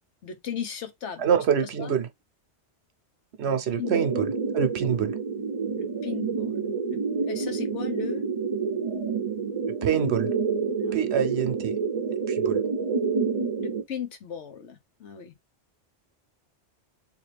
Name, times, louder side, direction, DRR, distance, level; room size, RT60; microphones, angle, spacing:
voice 1, 0.2-1.9 3.5-4.1 5.8-7.0 7.3-8.2 10.8-11.0 13.6-15.3, left 8 dB, 80° left, 1.3 m, -37 dB
voice 2, 1.2-2.1 3.4-5.1 9.7-10.3 10.9-11.8 12.3-12.6, right 8 dB, 70° right, 0.9 m, -26 dB
sound 1, 3.8-13.8, right 5 dB, 35° right, 0.6 m, -28 dB
3.6 x 2.8 x 3.3 m
omnidirectional pair, 1.2 m